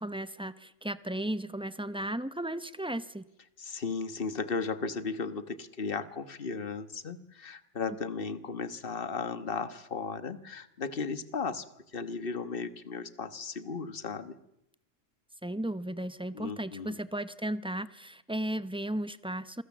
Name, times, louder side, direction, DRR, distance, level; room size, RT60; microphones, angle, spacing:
voice 1, 0.0-3.3 15.4-19.6, right 1 dB, 5° right, 13 dB, 0.5 m, -35 dB
voice 2, 3.6-11.6 11.9-14.4 16.3-17.0, left 4 dB, 40° left, 12 dB, 1.5 m, -35 dB
27.5 x 23.5 x 7.4 m, 0.82 s
omnidirectional pair, 1.6 m